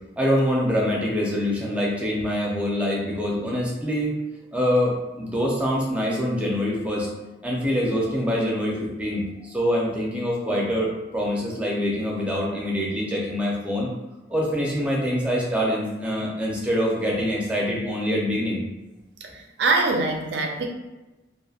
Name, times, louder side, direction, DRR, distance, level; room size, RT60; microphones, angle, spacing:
voice 1, 0.2-4.1 4.5-7.1 7.4-13.9 14.3-18.6, equal, 5° right, -4 dB, 0.5 m, -25 dB
voice 2, 19.6-20.7, right 3 dB, 70° right, 3 dB, 0.4 m, -22 dB
2.6 x 2.5 x 2.4 m, 1.1 s
head